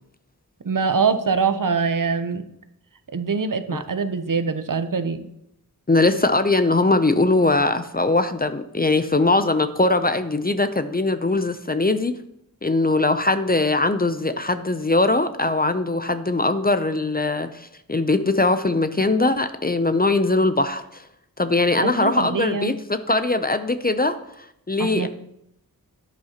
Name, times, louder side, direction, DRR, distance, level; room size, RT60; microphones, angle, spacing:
voice 1, 0.6-2.4 3.1-5.3 21.8-22.8 24.8-25.1, right 5 dB, 60° right, 9 dB, 0.8 m, -23 dB
voice 2, 5.9-12.1 12.6-21.0 21.4-24.2 24.7-25.1, left 2 dB, 25° left, 10 dB, 0.5 m, -21 dB
10.5 x 10.5 x 2.9 m, 0.80 s
wide cardioid pair, 80°, 37 cm